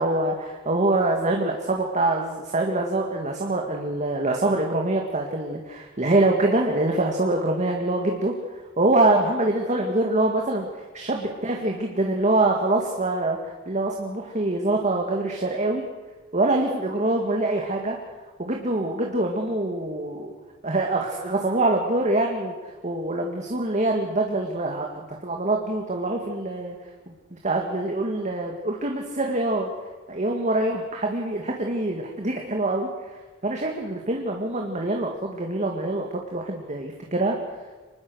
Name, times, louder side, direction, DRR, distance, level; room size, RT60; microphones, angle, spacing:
voice 1, 0.0-8.4 8.8-10.7 10.9-13.4 13.7-15.8 16.3-18.0 18.4-20.3 20.6-22.5 22.8-26.8 27.1-29.7 30.1-32.9 33.4-37.4, right 2 dB, 35° right, 1 dB, 2.0 m, -24 dB
25.5 x 20.0 x 6.4 m, 1.3 s
head